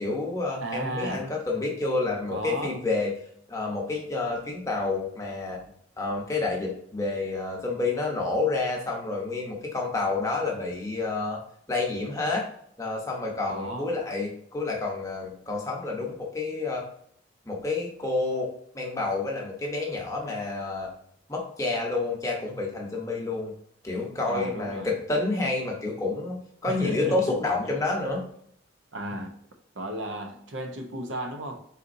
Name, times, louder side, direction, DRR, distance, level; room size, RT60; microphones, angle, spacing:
voice 1, 0.0-3.1 3.5-5.6 6.0-11.4 11.7-12.4 12.8-16.8 17.5-20.9 21.3-23.5 23.8-28.2, left 3 dB, 15° left, 0.8 m, -29 dB
voice 2, 0.6-1.3 2.3-2.8 13.5-13.9 24.2-24.9 26.6-27.3 27.7-27.8 28.9-29.4 29.7-31.7, right 1 dB, 70° right, 0.6 m, -34 dB
4.1 x 4.0 x 2.6 m
head